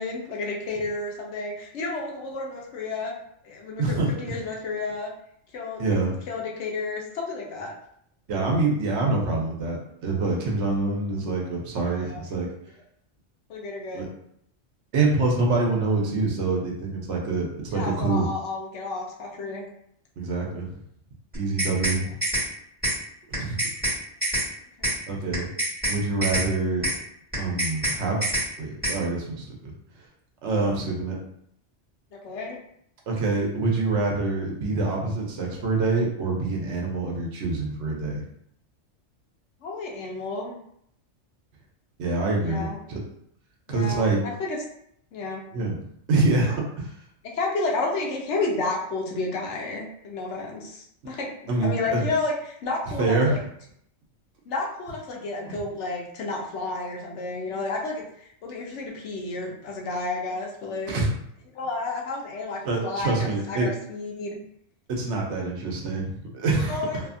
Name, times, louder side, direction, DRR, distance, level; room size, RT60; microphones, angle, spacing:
voice 1, 0.0-5.1 5.5-5.8 6.3-7.7 11.8-12.2 13.5-14.1 17.7-19.7 22.0-22.1 24.8-24.9 32.2-32.6 39.6-40.6 42.4-42.8 43.7-44.6 45.1-45.4 47.3-53.4 54.5-60.9 61.5-64.4 66.7-67.1, left 3 dB, 70° left, -1 dB, 0.9 m, -31 dB
voice 2, 3.8-4.1 5.8-6.2 8.3-12.5 13.9-14.1 14.9-18.2 20.2-20.8 21.3-22.1 23.3-23.6 25.1-25.5 25.9-26.9 27.4-28.2 28.6-29.7 30.4-31.2 33.1-38.2 42.0-43.0 43.7-44.2 45.5-45.8 46.1-46.9 51.0-51.1 51.5-52.0 53.0-53.4 55.5-55.6 60.9-61.1 62.6-63.7 64.9-67.1, right 3 dB, 70° right, -1 dB, 0.9 m, -25 dB
sound 1, 21.3-22.0 22.2-22.5 22.8-23.0 23.3-24.0 24.2-24.5 24.8-25.0 25.3-26.0 26.2-26.5 26.8-27.0 27.3-28.0 28.2-28.5 28.8-29.0, right 1 dB, 10° right, 1.4 m, -25 dB
2.7 x 2.4 x 2.5 m, 0.71 s
omnidirectional pair, 1.2 m